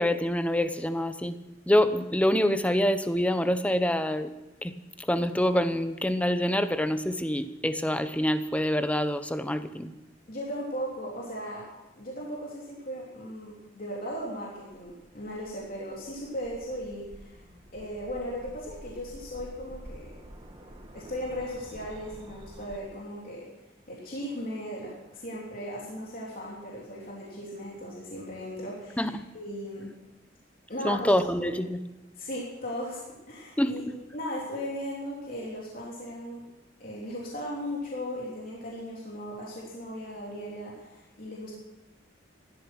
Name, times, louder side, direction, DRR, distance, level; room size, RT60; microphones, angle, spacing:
voice 1, 0.0-1.4 1.7-4.3 4.6-9.9 29.0-29.2 30.8-31.8 33.6-34.0, left 1 dB, 5° left, 11 dB, 0.8 m, -26 dB
voice 2, 10.3-11.6 12.0-17.4 17.7-20.0 20.9-23.4 23.9-29.9 30.7-31.1 32.2-33.8 34.1-36.4 36.8-41.5, equal, 45° left, -4 dB, 3.5 m, -37 dB
sound 1, 14.6-22.8, equal, 25° right, 1.6 m, -49 dB
17.0 x 12.5 x 6.0 m, 1.0 s
head